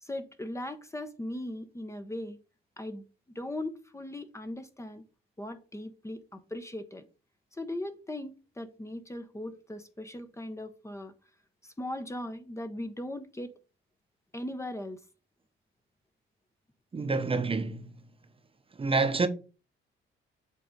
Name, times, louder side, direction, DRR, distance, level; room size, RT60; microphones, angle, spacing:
voice 1, 0.0-2.4 2.8-3.0 3.3-5.1 5.4-7.1 7.5-11.1 11.6-13.6 14.3-15.0, left 1 dB, 15° left, 0.9 m, -39 dB
voice 2, 16.9-17.9 18.8-19.3, right 3 dB, 25° right, 0.9 m, -27 dB
7.7 x 3.5 x 5.1 m
cardioid pair, 90°, 20 cm